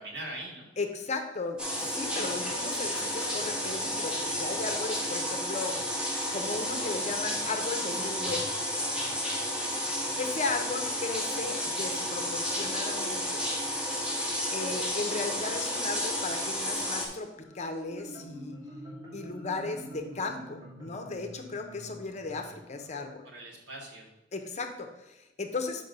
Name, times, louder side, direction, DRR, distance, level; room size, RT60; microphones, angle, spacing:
voice 1, 0.0-0.7 1.6-1.7 5.2-5.8 10.1-10.3 23.2-24.1, right 1 dB, 80° right, -1 dB, 1.9 m, -43 dB
voice 2, 0.8-5.8 6.3-8.4 10.2-13.4 14.5-18.6 19.1-23.2 24.3-25.8, left 3 dB, 40° left, 6 dB, 0.8 m, -36 dB
sound 1, 1.6-17.1, equal, 5° right, 1.3 m, -32 dB
Marimba xylophone, 17.5-23.0, equal, 20° right, 1.9 m, -46 dB
5.5 x 5.3 x 5.4 m, 1.0 s
head